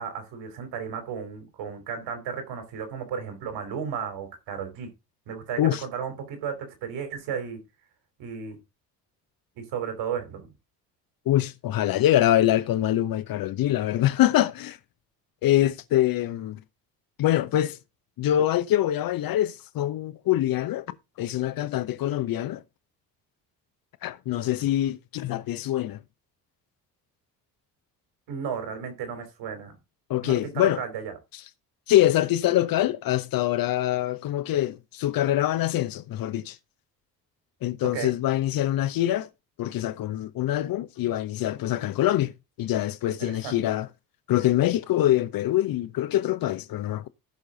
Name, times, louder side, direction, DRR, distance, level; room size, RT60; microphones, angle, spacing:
voice 1, 0.0-4.9 5.3-6.5 6.8-7.6 8.2-8.6 9.6-10.5 28.3-29.7 30.2-31.1 37.9-38.1 43.1-43.6, right 7 dB, 60° right, 4.4 m, -34 dB
voice 2, 11.3-14.8 15.4-16.6 17.2-17.8 18.2-22.6 24.0-26.0 30.1-30.8 31.9-36.6 37.6-39.3 39.6-42.3 42.6-43.9 44.3-47.1, left 13 dB, 45° left, 0.9 m, -24 dB
14.5 x 6.3 x 3.9 m
figure-of-eight pair, 50°, 50 cm